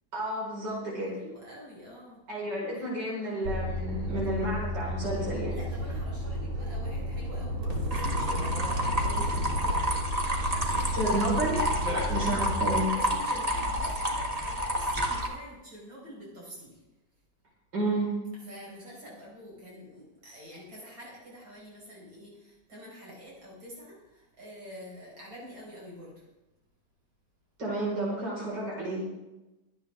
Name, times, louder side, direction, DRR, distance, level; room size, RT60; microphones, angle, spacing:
voice 1, 0.1-1.2 2.3-5.5 10.9-11.6 11.9-12.9 17.7-18.2 27.6-29.0, right 1 dB, 65° right, -5 dB, 5.7 m, -31 dB
voice 2, 1.1-2.2 5.5-8.7 9.0-9.9 10.4-11.4 11.8-12.0 13.0-16.8 18.5-26.1, equal, 85° right, -5 dB, 5.7 m, -46 dB
sound 1, 3.4-12.8, equal, 45° right, 2.6 m, -32 dB
sound 2, 7.9-15.3, equal, 20° right, 1.6 m, -30 dB
23.5 x 9.0 x 3.6 m, 1.0 s
omnidirectional pair, 2.0 m